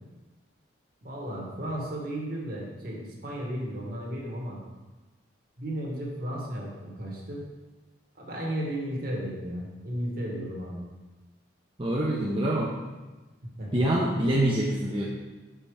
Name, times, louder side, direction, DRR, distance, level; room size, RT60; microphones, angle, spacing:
voice 1, 1.0-4.6 5.6-7.4 8.2-10.8 13.4-13.7, right 1 dB, 55° right, -2 dB, 1.7 m, -34 dB
voice 2, 11.8-12.7 13.7-15.1, right 1 dB, 30° right, -4 dB, 0.8 m, -25 dB
5.8 x 5.5 x 4.9 m, 1.2 s
head